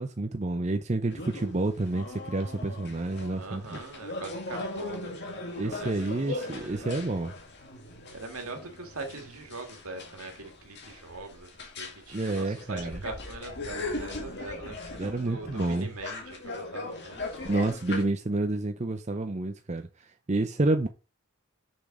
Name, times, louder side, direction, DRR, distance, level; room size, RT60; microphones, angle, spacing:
voice 1, 0.0-3.8 5.6-7.3 12.1-12.9 15.0-15.9 17.4-19.9 20.3-20.9, right 2 dB, 30° right, 0.6 m, -29 dB
sound 1, 1.1-18.0, left 2 dB, 50° left, 2.4 m, -39 dB
voice 2, 3.3-7.1 8.1-17.4, right 3 dB, 70° right, 2.0 m, -42 dB
6.7 x 6.1 x 4.8 m
head